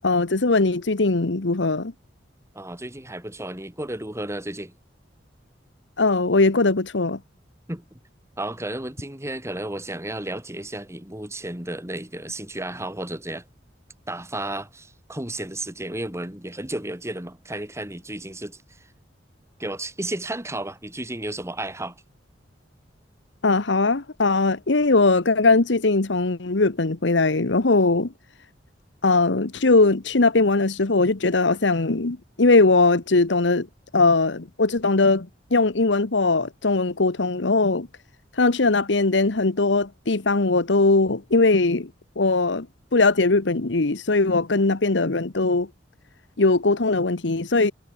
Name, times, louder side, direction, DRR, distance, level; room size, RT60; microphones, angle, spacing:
voice 1, 0.0-1.9 6.0-7.2 23.4-28.1 29.0-33.7 33.9-37.9 38.4-41.9 42.2-42.7 42.9-45.7 46.4-47.7, left 3 dB, 75° left, 1.2 m, -20 dB
voice 2, 2.5-4.7 7.7-8.0 8.4-13.5 14.1-18.6 19.6-22.0, right 1 dB, 15° right, 4.2 m, -33 dB
head